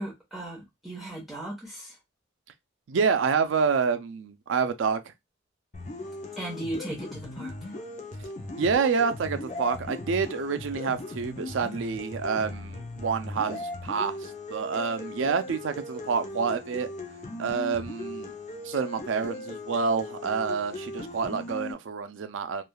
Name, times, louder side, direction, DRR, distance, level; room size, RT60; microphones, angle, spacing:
voice 1, 0.0-2.0 6.4-7.8, right 1 dB, ahead, 1.0 m, -37 dB
voice 2, 2.9-5.1 8.6-16.9 17.4-18.3 18.6-22.6, right 5 dB, 75° right, 0.4 m, -28 dB
sound 1, 5.7-21.7, left 2 dB, 40° left, 0.5 m, -38 dB
3.1 x 2.3 x 2.3 m
head